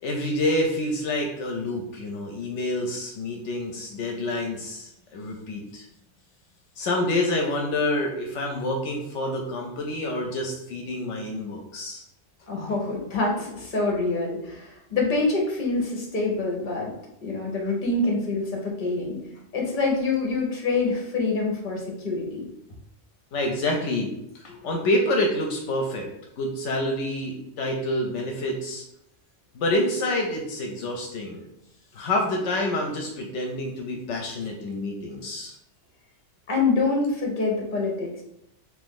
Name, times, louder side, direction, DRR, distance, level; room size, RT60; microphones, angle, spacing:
voice 1, 0.0-5.8 6.8-12.0 23.3-26.1 26.4-28.8 29.5-31.4 31.9-35.5, left 1 dB, 80° left, 1 dB, 0.9 m, -27 dB
voice 2, 12.5-16.9 17.2-19.2 19.5-22.4 36.5-38.2, left 3 dB, 45° left, -1 dB, 1.0 m, -26 dB
2.9 x 2.6 x 3.6 m, 0.81 s
omnidirectional pair, 1.2 m